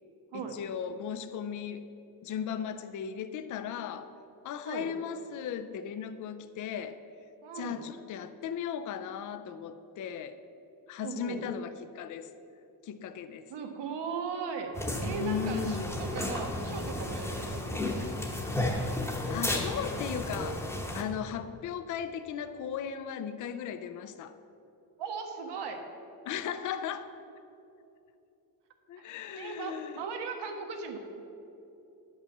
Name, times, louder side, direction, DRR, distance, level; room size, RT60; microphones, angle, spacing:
voice 1, 0.3-1.9 2.2-4.1 4.4-7.0 7.5-10.4 10.9-12.3 12.8-13.5 15.0-16.0 19.3-24.4 26.2-27.1 28.9-30.0, left 8 dB, 50° left, 10 dB, 0.5 m, -37 dB
voice 2, 7.4-7.8 11.0-11.4 13.5-14.7 15.0-18.1 25.0-25.8 29.0-29.1 29.3-31.0, right 5 dB, 85° right, 4 dB, 1.4 m, -37 dB
sound 1, 14.7-21.0, left 1 dB, 5° left, 1.0 m, -33 dB
10.5 x 5.5 x 7.1 m, 2.8 s
cardioid pair, 170°, 40 cm